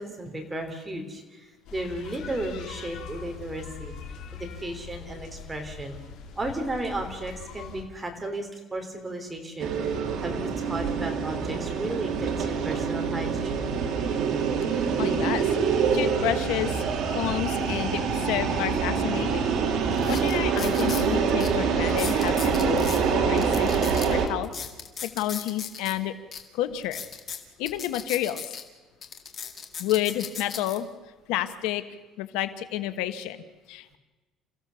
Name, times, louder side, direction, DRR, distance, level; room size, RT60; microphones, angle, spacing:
voice 1, 0.0-3.9 4.3-6.0 6.4-13.7, right 1 dB, 10° right, 3 dB, 3.1 m, -34 dB
sound 1, 1.7-7.8, left 6 dB, 65° left, 4.4 m, -42 dB
sound 2, 9.6-24.3, right 6 dB, 55° right, 2.8 m, -25 dB
voice 2, 15.0-16.8 17.1-19.5 20.1-24.5 25.0-26.1 26.5-27.0 27.6-28.5 29.8-30.9 31.3-31.8 32.2-34.0, left 13 dB, 85° left, 10 dB, 1.3 m, -30 dB
sound 3, 19.3-19.4 19.9-21.1 21.4-21.5 21.9-23.0 23.4-25.9 26.3-26.4 26.8-28.6 29.0-30.8 31.4-31.7, left 6 dB, 35° left, 2.1 m, -37 dB
28.5 x 15.5 x 7.0 m, 1.2 s
cardioid pair, 160°, 0 cm